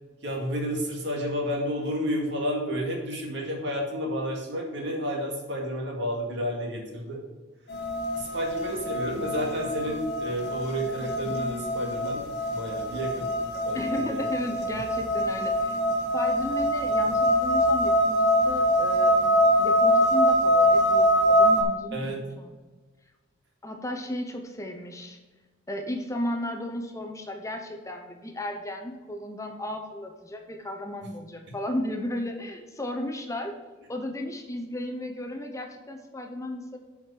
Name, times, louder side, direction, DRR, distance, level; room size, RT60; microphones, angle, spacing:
voice 1, 0.2-7.2 8.1-13.3 13.6-14.2 21.9-22.2, equal, 60° right, 0 dB, 2.1 m, -31 dB
sound 1, 7.7-21.6, equal, 55° left, 1.5 m, -24 dB
voice 2, 13.7-15.8 16.1-19.2 19.6-22.5 23.6-25.2 25.7-33.5 33.9-36.8, left 1 dB, 15° left, 4 dB, 0.8 m, -34 dB
7.7 x 5.1 x 5.8 m, 1.3 s
head